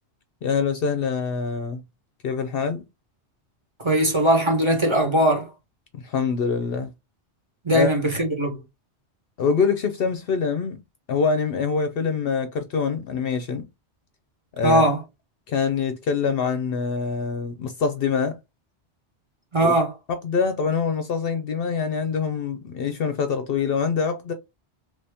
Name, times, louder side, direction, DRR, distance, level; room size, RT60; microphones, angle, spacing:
voice 1, 0.4-1.8 2.2-2.8 5.9-6.9 7.7-7.9 9.4-10.8 11.1-13.6 14.6-14.8 15.5-18.4 19.6-19.7 20.2-24.3, left 5 dB, 65° left, 0.7 m, -24 dB
voice 2, 3.8-5.5 7.6-8.6 14.6-15.0 19.5-19.9, right 1 dB, 25° right, 1.1 m, -20 dB
3.2 x 2.7 x 3.3 m
omnidirectional pair, 1.2 m